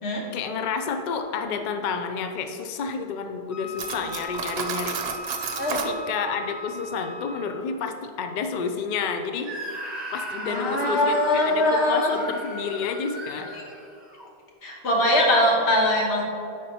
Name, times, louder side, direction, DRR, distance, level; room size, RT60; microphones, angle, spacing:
voice 1, 0.3-5.0 5.7-9.5 10.1-13.5, left 5 dB, 55° left, 6 dB, 0.5 m, -30 dB
Wind instrument woodwind instrument, 3.5-7.7, left 1 dB, 15° left, 0.8 m, -37 dB
Cutlery silverware, 3.8-6.0, right 6 dB, 70° right, 0.8 m, -31 dB
voice 2, 5.6-5.9 10.5-12.1 13.5-13.6 14.6-16.2, left 1 dB, 85° left, -2 dB, 1.5 m, -22 dB
Screaming, 9.4-14.3, equal, 25° right, 1.0 m, -37 dB
9.5 x 5.0 x 2.8 m, 2.6 s
omnidirectional pair, 1.1 m